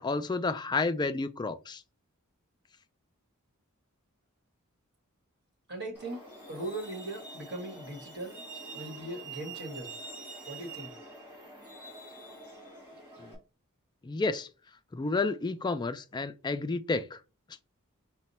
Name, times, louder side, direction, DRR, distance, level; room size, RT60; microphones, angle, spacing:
voice 1, 0.0-1.8 13.2-13.4 14.0-14.5 14.9-17.2, left 3 dB, 20° left, 0.3 m, -31 dB
voice 2, 5.7-6.2 6.5-8.4 8.7-9.9 10.5-10.9, right 1 dB, 50° right, 1.7 m, -39 dB
Truck, 5.9-13.3, right 3 dB, 10° right, 2.1 m, -46 dB
4.9 x 2.2 x 4.1 m
head